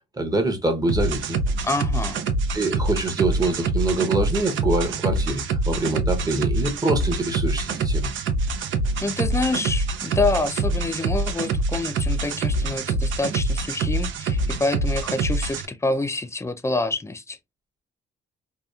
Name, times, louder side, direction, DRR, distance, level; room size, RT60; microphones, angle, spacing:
voice 1, 0.2-1.4 2.5-8.1, right 2 dB, 20° right, 0.8 m, -25 dB
sound 1, 0.9-15.6, right 2 dB, 75° right, 0.5 m, -25 dB
voice 2, 1.6-2.2 9.0-17.4, left 2 dB, 15° left, 0.4 m, -27 dB
2.8 x 2.3 x 2.3 m
cardioid pair, 90°, 20 cm